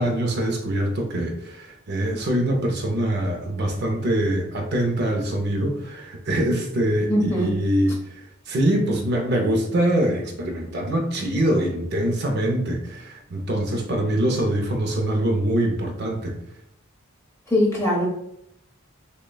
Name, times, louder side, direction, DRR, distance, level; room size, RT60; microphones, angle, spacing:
voice 1, 0.0-16.4, right 1 dB, 50° right, 2 dB, 0.5 m, -24 dB
voice 2, 7.1-7.5 17.5-18.1, equal, 15° left, -4 dB, 1.1 m, -21 dB
6.2 x 2.2 x 2.3 m, 0.77 s
head